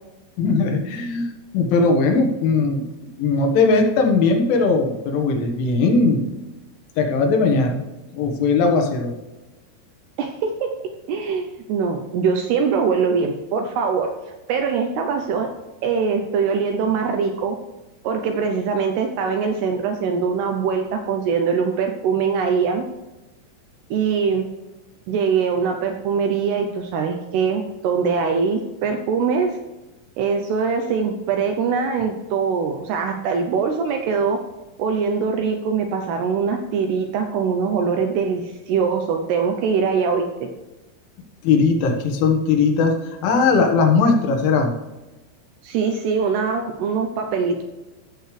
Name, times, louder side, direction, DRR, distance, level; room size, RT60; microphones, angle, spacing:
voice 1, 0.4-2.9 3.2-6.3 7.0-7.8 8.1-9.1 41.4-44.7, left 4 dB, 85° left, 3 dB, 3.8 m, -19 dB
voice 2, 10.2-10.7 11.1-14.1 14.5-15.5 15.8-17.6 18.0-22.9 23.9-24.5 25.1-29.6 30.2-34.4 34.8-40.5 45.6-47.6, right 5 dB, 80° right, 4 dB, 2.4 m, -22 dB
15.5 x 6.7 x 3.3 m, 1.1 s
omnidirectional pair, 5.4 m